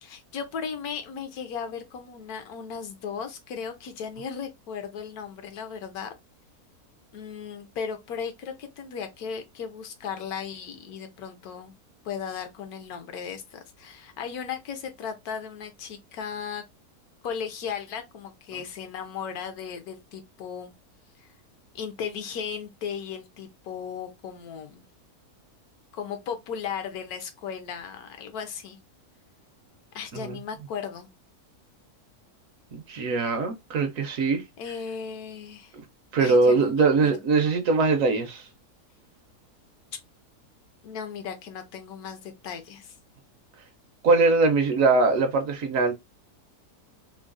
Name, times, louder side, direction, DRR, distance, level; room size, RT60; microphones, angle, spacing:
voice 1, 0.0-6.1 7.1-11.7 12.0-16.6 17.2-20.7 21.2-21.3 21.7-24.8 25.9-28.8 29.9-31.1 34.6-35.7 36.2-37.1 40.8-43.0, left 7 dB, 75° left, 1.1 m, -36 dB
voice 2, 32.7-34.4 36.1-38.4 44.0-45.9, right 3 dB, 65° right, 0.9 m, -22 dB
3.8 x 2.0 x 2.4 m
omnidirectional pair, 1.6 m